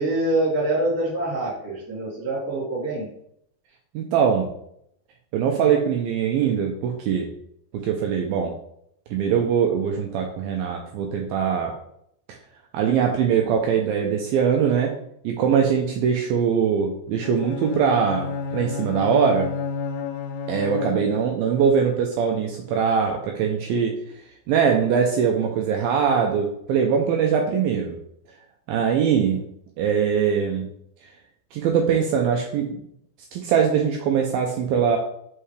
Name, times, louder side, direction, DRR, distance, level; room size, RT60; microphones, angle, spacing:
voice 1, 0.0-3.1, right 2 dB, 10° right, -7 dB, 0.8 m, -25 dB
voice 2, 3.9-4.5 5.3-7.3 7.7-8.5 9.1-11.7 12.7-15.0 15.2-19.5 20.5-23.9 24.5-28.0 28.7-29.4 29.8-30.7 31.5-32.8 33.3-35.0, right 7 dB, 85° right, 1 dB, 2.2 m, -22 dB
Bowed string instrument, 17.2-21.4, left 5 dB, 85° left, 2.2 m, -31 dB
5.6 x 5.6 x 3.3 m, 0.71 s
omnidirectional pair, 4.9 m